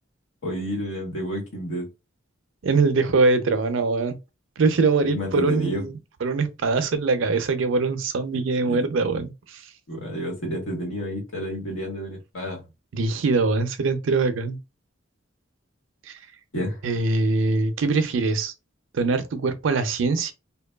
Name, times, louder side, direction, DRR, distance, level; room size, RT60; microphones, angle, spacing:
voice 1, 0.4-1.9 5.1-5.8 8.6-8.8 9.9-12.7 16.5-16.8, equal, 85° left, 1.2 m, -30 dB
voice 2, 2.6-4.1 4.6-9.6 12.9-14.6 16.1-16.2 16.8-18.5 18.9-20.3, right 3 dB, 75° right, 0.5 m, -23 dB
2.7 x 2.2 x 2.2 m
head